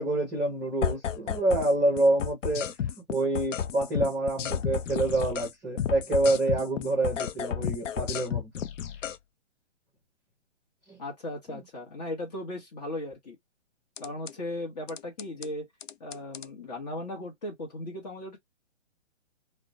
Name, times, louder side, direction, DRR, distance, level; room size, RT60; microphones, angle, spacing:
voice 1, 0.0-2.7 3.1-8.5 10.9-11.0 11.5-11.6, right 2 dB, 5° right, 0.7 m, -27 dB
sound 1, 0.8-1.7 2.0-5.5 5.8-9.2 14.0-14.3 14.9-15.5 15.8-16.5, left 8 dB, 85° left, 0.5 m, -32 dB
voice 2, 11.0-13.4 14.0-15.7 16.0-18.4, left 1 dB, 35° left, 0.9 m, -37 dB
2.1 x 2.1 x 2.7 m
hypercardioid pair, 150°, 36 cm